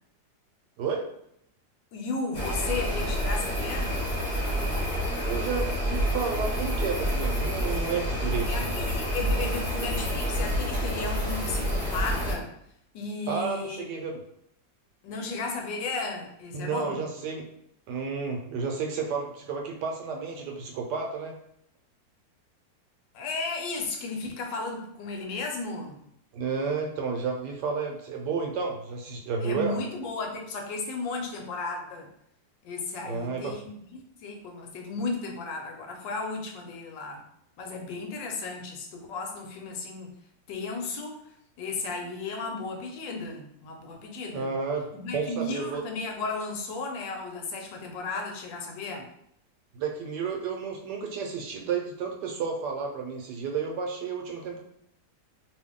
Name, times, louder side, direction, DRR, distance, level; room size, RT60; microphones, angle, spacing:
voice 1, 0.8-1.1 5.2-8.8 13.3-14.2 16.5-17.5 17.9-21.3 26.3-29.8 33.0-33.6 44.3-45.8 49.7-54.6, right 5 dB, 75° right, 2 dB, 1.2 m, -31 dB
voice 2, 1.9-4.0 8.5-12.5 12.9-13.9 15.0-17.0 23.1-26.0 29.4-32.1 32.6-37.2 37.6-40.1 40.5-41.2 41.6-44.5 44.9-49.1, left 3 dB, 85° left, 2 dB, 1.4 m, -34 dB
sound 1, 2.3-12.4, equal, 40° left, 1.0 m, -28 dB
2.8 x 2.6 x 3.6 m, 0.72 s
omnidirectional pair, 1.9 m